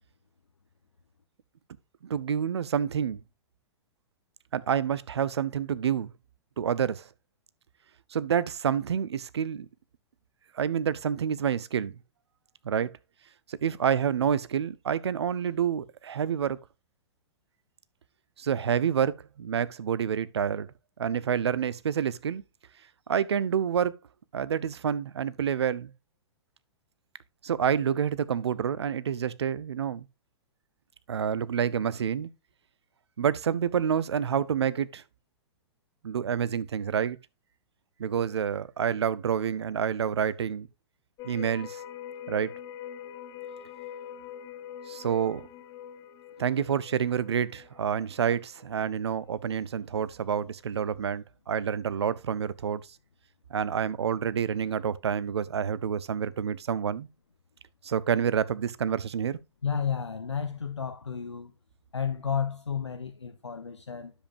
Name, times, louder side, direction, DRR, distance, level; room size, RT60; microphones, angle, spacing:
voice 1, 2.0-3.2 4.5-6.1 6.6-7.1 8.1-9.7 10.5-11.9 12.6-12.9 13.5-16.6 18.4-20.7 21.0-22.4 23.1-24.0 24.3-25.9 27.4-30.1 31.1-32.3 33.2-35.0 36.0-37.2 38.0-40.7 41.2-41.8 42.3-42.5 44.9-45.5 46.4-52.8 53.5-57.1 57.8-59.4, right 8 dB, 70° right, 0.6 m, -28 dB
sound 1, 41.2-48.9 49.3-49.4, left 9 dB, 30° left, 0.9 m, -44 dB
voice 2, 59.6-61.5 61.9-64.1, left 7 dB, 85° left, 0.7 m, -32 dB
10.0 x 7.3 x 2.5 m
figure-of-eight pair, 110°, 14 cm